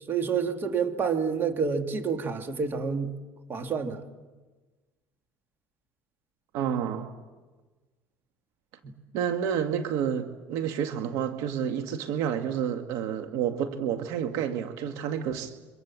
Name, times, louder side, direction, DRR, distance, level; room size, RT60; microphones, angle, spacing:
voice 1, 0.1-3.1 3.5-4.0 8.8-8.9, right 6 dB, 35° right, 5 dB, 2.7 m, -28 dB
voice 2, 6.5-7.1 9.1-15.5, right 8 dB, 75° right, 6 dB, 1.9 m, -29 dB
27.5 x 24.5 x 7.5 m, 1.3 s
supercardioid pair, 100°, 6 cm